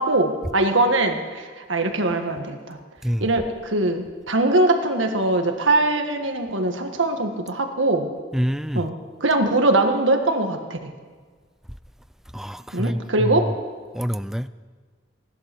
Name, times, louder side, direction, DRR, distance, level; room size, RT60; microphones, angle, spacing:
voice 1, 0.0-2.8 3.2-8.1 8.8-10.9 12.7-13.5, right 2 dB, 80° right, 5 dB, 1.6 m, -22 dB
voice 2, 8.3-8.9 12.3-13.5 13.9-14.5, equal, ahead, 14 dB, 0.3 m, -26 dB
17.5 x 11.5 x 6.1 m, 1.5 s
head